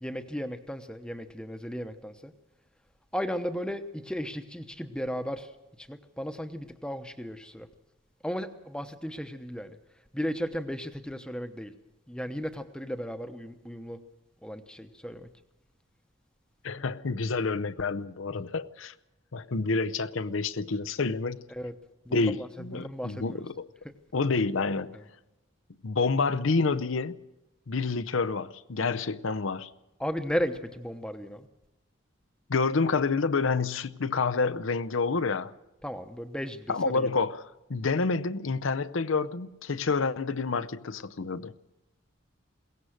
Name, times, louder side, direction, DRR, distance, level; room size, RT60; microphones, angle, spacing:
voice 1, 0.0-2.3 3.1-5.5 5.8-7.7 8.2-9.8 10.1-11.7 12.1-14.0 14.4-15.3 21.6-21.7 22.1-22.2 22.7-23.4 30.0-31.5 35.8-37.1, equal, 5° left, 1.0 m, -35 dB
voice 2, 16.6-18.9 19.3-21.4 22.1-23.7 24.1-24.9 25.8-27.1 27.7-29.7 32.5-35.5 36.7-41.5, left 4 dB, 80° left, 0.7 m, -28 dB
22.0 x 18.0 x 6.6 m
head